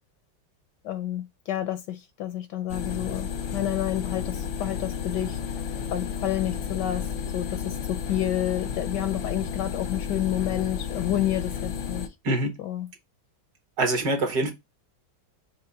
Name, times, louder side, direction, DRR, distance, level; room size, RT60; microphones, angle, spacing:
voice 1, 0.8-5.4 5.9-12.1 12.6-12.9, left 12 dB, 75° left, 1.1 m, -30 dB
sound 1, 2.7-12.1, left 7 dB, 90° left, 1.7 m, -32 dB
voice 2, 13.8-14.5, right 2 dB, 55° right, 1.8 m, -24 dB
6.8 x 3.3 x 4.6 m
omnidirectional pair, 2.2 m